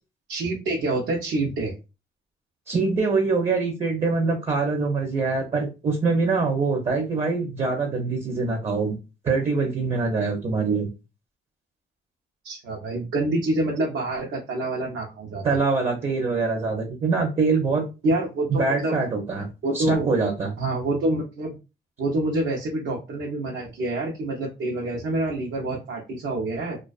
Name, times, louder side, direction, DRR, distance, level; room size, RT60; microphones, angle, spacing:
voice 1, 0.3-1.7 12.4-15.6 18.0-19.0 19.6-20.1 20.6-21.5 22.0-26.8, right 2 dB, 70° right, -1 dB, 0.7 m, -27 dB
voice 2, 2.7-9.0 9.2-10.9 15.4-17.9 18.6-19.5 19.7-20.6, right 4 dB, 35° right, 2 dB, 0.6 m, -24 dB
2.3 x 2.2 x 2.3 m, 0.29 s
cardioid pair, 90°, 20 cm